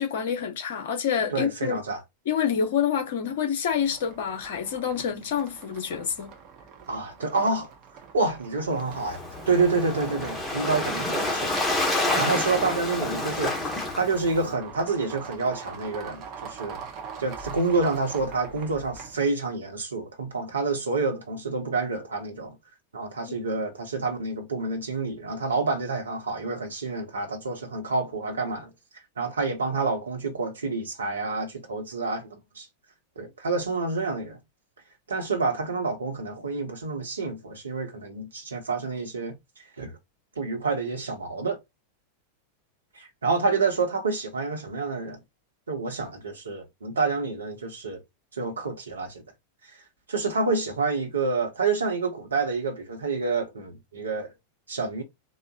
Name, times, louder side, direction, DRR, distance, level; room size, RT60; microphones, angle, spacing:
voice 1, 0.0-1.8 2.3-6.3, left 7 dB, 55° left, 1.0 m, -27 dB
voice 2, 1.3-2.0 6.9-7.7 8.1-13.6 14.0-16.8 17.2-22.6 22.9-28.7 29.2-32.7 33.2-34.4 35.1-39.4 39.8-39.9 40.4-41.6 43.0-45.2 45.7-48.0 48.4-49.2 50.1-54.3 54.7-55.0, right 3 dB, 70° right, 1.1 m, -28 dB
sound 1, 3.7-19.3, right 6 dB, 35° right, 0.9 m, -44 dB
Waves surf, 8.8-14.5, left 2 dB, 10° left, 1.2 m, -28 dB
4.1 x 2.5 x 2.4 m
figure-of-eight pair, 90°, 0 cm